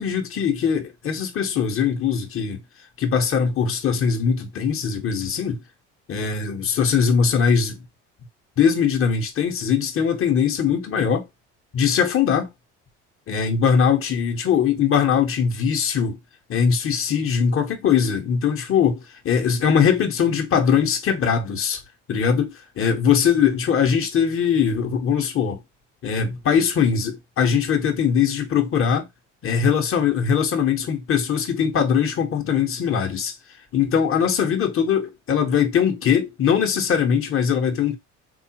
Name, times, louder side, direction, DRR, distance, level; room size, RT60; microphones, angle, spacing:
voice 1, 0.0-2.6 3.0-5.6 6.1-7.8 8.6-11.2 11.7-12.5 13.3-16.2 16.5-19.0 19.2-21.8 22.1-25.6 26.0-29.0 29.4-33.3 33.7-38.0, left 7 dB, 35° left, 0.9 m, -21 dB
3.5 x 2.4 x 2.8 m
hypercardioid pair, 65°, 36 cm